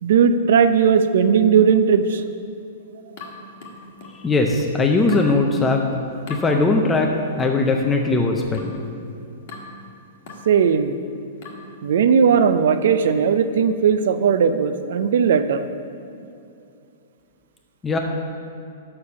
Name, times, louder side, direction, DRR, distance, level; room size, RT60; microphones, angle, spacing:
voice 1, 0.0-2.2 10.5-10.9 11.8-15.7, right 6 dB, 65° right, 10 dB, 0.4 m, -17 dB
sound 1, 3.2-4.3 5.1-5.4 6.3-6.5 7.4-7.7 8.5-8.8 9.5-9.8 10.3-10.5 11.4-11.7, left 3 dB, 45° left, 1.4 m, -39 dB
voice 2, 4.2-5.8 6.3-8.7 17.8-18.0, left 3 dB, 10° left, 2 dB, 0.4 m, -19 dB
6.6 x 5.6 x 6.9 m, 2.6 s
hypercardioid pair, 165°, 0 cm